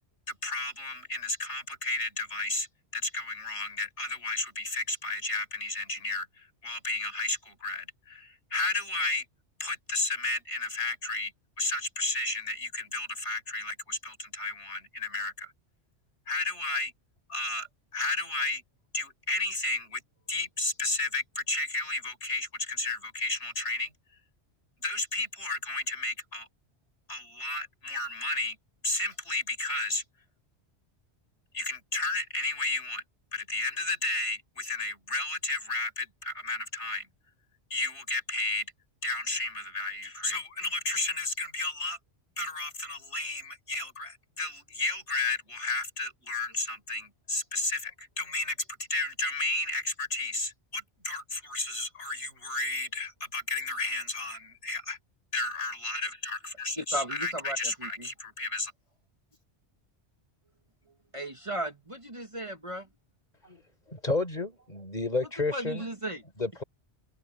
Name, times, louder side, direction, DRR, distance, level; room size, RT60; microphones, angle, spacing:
voice 1, 0.3-2.7 2.9-9.3 9.6-11.3 11.6-15.5 16.3-16.9 17.3-17.7 17.9-18.6 18.9-20.0 20.3-23.9 24.8-26.5 27.1-28.6 28.8-30.0 31.5-33.0 33.3-37.1 37.7-38.7 39.0-42.0 42.4-48.6 48.9-55.0 55.3-58.7, left 2 dB, 85° left, 5.4 m, -32 dB
voice 2, 56.8-58.1 61.1-62.9 65.5-66.2, right 1 dB, 30° right, 1.7 m, -35 dB
voice 3, 63.9-65.9 66.4-66.6, left 3 dB, 40° left, 4.4 m, -31 dB
open air
omnidirectional pair, 1.1 m